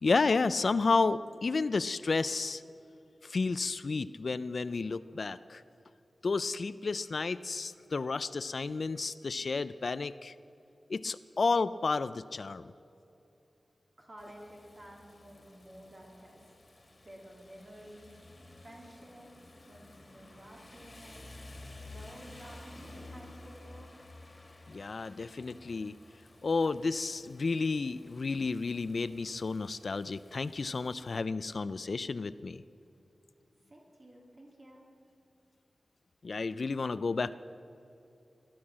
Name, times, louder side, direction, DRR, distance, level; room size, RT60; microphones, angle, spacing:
voice 1, 0.0-2.6 3.2-5.6 6.2-10.3 10.9-12.7 24.7-25.9 26.4-32.6 36.2-37.4, left 4 dB, 60° left, 14 dB, 0.3 m, -31 dB
voice 2, 14.0-16.4 17.0-18.2 18.6-19.3 19.7-21.2 21.8-23.9 33.7-34.8, equal, 45° right, -2 dB, 2.8 m, -52 dB
Rain, 14.2-31.2, left 2 dB, 30° left, 1.8 m, -53 dB
17.0 x 10.5 x 7.4 m, 2.8 s
wide cardioid pair, 95°, 0 cm